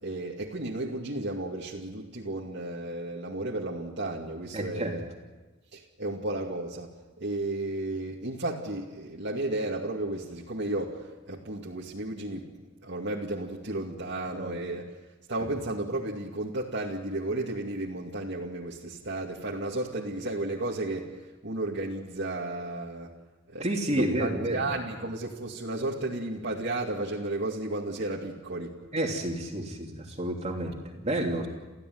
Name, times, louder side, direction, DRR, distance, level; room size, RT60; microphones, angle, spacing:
voice 1, 0.0-5.0 5.7-6.9 7.2-12.5 12.8-14.9 15.3-21.2 21.4-23.1 23.5-28.7, right 2 dB, 60° right, -3 dB, 2.4 m, -33 dB
voice 2, 4.5-5.0 14.3-14.5 23.6-24.6 28.9-31.5, right 1 dB, 35° right, 0 dB, 3.0 m, -30 dB
29.5 x 15.5 x 9.5 m, 1.2 s
head